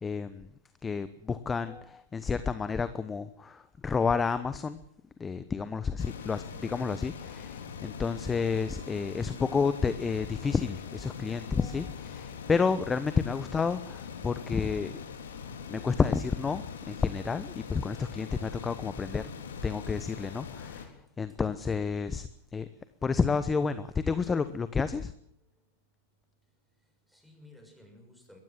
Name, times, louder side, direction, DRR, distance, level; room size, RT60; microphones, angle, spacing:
voice 1, 0.0-0.5 0.8-4.8 5.2-15.0 15.7-19.3 19.6-22.7 23.0-25.1, left 5 dB, 15° left, 13 dB, 1.0 m, -30 dB
sound 1, 6.0-20.8, left 6 dB, 75° left, 3.5 m, -42 dB
voice 2, 26.8-28.4, left 2 dB, ahead, 4 dB, 6.6 m, -56 dB
22.0 x 15.5 x 7.6 m, 0.70 s
hypercardioid pair, 105°, 0 cm